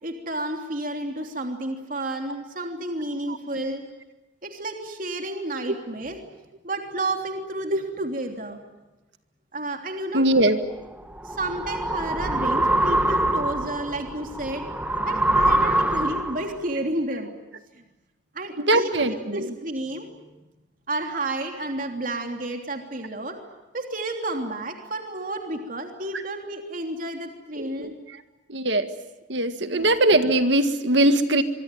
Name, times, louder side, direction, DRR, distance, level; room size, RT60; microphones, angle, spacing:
voice 1, 0.0-3.8 4.4-6.2 6.6-8.6 9.5-10.3 11.2-14.7 15.1-17.3 17.7-17.8 18.3-20.1 20.9-23.3 23.7-27.9 29.7-29.9, right 1 dB, 45° right, 3 dB, 3.2 m, -31 dB
voice 2, 3.3-3.7 7.7-7.8 10.1-10.6 18.6-19.5 27.6-28.2 28.5-28.9 29.3-31.4, right 1 dB, 70° right, 9 dB, 1.8 m, -21 dB
sound 1, 10.8-16.6, right 1 dB, 10° right, 1.3 m, -24 dB
25.0 x 24.0 x 9.2 m, 1.1 s
head